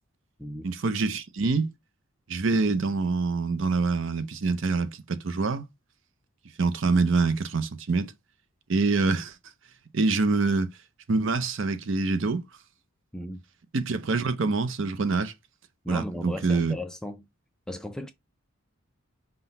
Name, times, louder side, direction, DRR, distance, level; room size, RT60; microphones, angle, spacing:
voice 1, 0.6-1.7 2.3-5.6 6.6-8.1 8.7-9.3 9.9-10.7 11.1-12.4 13.7-15.3 15.9-16.7, right 3 dB, 60° right, 0.6 m, -25 dB
voice 2, 15.8-17.3 17.7-18.1, left 1 dB, 5° left, 0.4 m, -36 dB
5.7 x 2.2 x 4.0 m
head